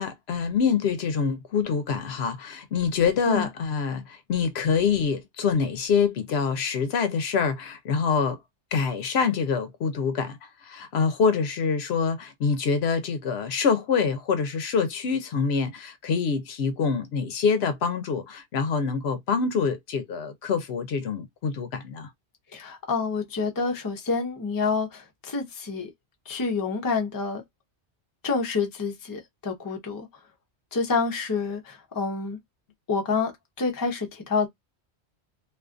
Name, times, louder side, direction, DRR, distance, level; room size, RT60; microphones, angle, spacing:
voice 1, 0.0-8.4 8.7-22.1, left 5 dB, 70° left, 0.8 m, -25 dB
voice 2, 22.5-25.9 26.3-27.4 28.2-30.1 30.7-32.4 32.9-33.3 33.6-34.5, left 4 dB, 25° left, 0.5 m, -28 dB
2.5 x 2.4 x 2.4 m
omnidirectional pair, 1.1 m